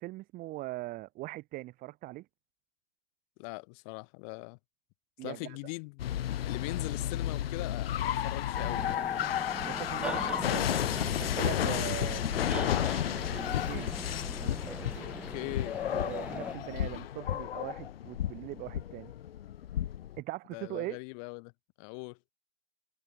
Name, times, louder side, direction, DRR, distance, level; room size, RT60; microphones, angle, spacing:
voice 1, 0.0-2.3 5.2-5.6 9.7-10.7 11.2-12.7 13.3-14.0 14.4-15.1 15.9-19.1 20.2-21.0, right 19 dB, 25° right, 3.0 m, -41 dB
voice 2, 3.4-4.6 5.2-6.2 6.4-9.1 10.0-10.3 15.0-15.8 20.5-21.5 21.8-22.2, left 35 dB, 35° left, 6.1 m, -41 dB
sound 1, 6.0-20.2, left 11 dB, 60° left, 0.5 m, -32 dB
sound 2, 8.5-16.6, right 2 dB, 5° right, 1.0 m, -42 dB
figure-of-eight pair, 125°, 33 cm